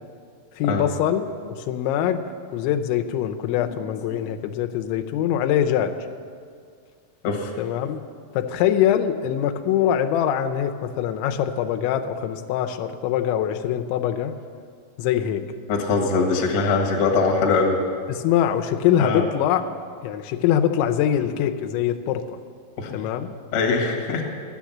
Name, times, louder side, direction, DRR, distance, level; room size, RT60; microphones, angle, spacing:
voice 1, 0.6-1.3 1.7-2.2 2.5-5.9 7.6-8.0 8.3-14.3 15.0-15.5 18.1-19.6 20.0-22.4 22.9-23.3, left 10 dB, 90° left, 6 dB, 3.0 m, -23 dB
voice 2, 15.7-17.8 19.0-19.3 22.8-23.0 23.5-24.2, left 4 dB, 55° left, 0 dB, 1.8 m, -22 dB
13.0 x 9.8 x 7.3 m, 2.1 s
omnidirectional pair, 5.2 m